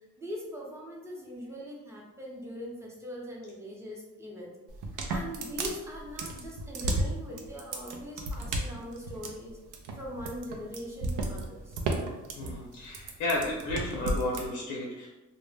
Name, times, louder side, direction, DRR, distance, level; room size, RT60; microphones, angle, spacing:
voice 1, 0.2-4.5 5.1-9.6 9.9-11.8, equal, 10° right, -3 dB, 0.7 m, -41 dB
sound 1, 4.7-14.4, right 2 dB, 85° right, 0.5 m, -33 dB
voice 2, 12.4-15.1, left 2 dB, 85° left, -2 dB, 0.5 m, -32 dB
2.0 x 2.0 x 3.2 m, 1.1 s
cardioid pair, 90°, 30 cm